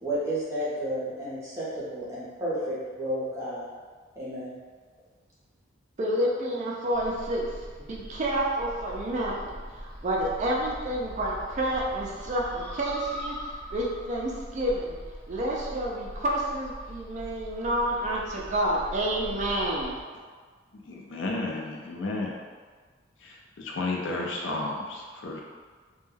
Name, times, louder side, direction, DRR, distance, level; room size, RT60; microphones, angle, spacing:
voice 1, 0.0-3.7 4.2-4.5, right 1 dB, 15° right, -9 dB, 0.7 m, -32 dB
voice 2, 6.0-15.0 15.3-20.0, right 1 dB, 40° right, -3 dB, 0.4 m, -29 dB
sound 1, 6.9-20.0, equal, 30° left, 1.0 m, -42 dB
voice 3, 20.7-22.3 23.2-25.4, left 2 dB, 75° left, -1 dB, 0.4 m, -32 dB
2.2 x 2.2 x 3.1 m, 1.5 s
head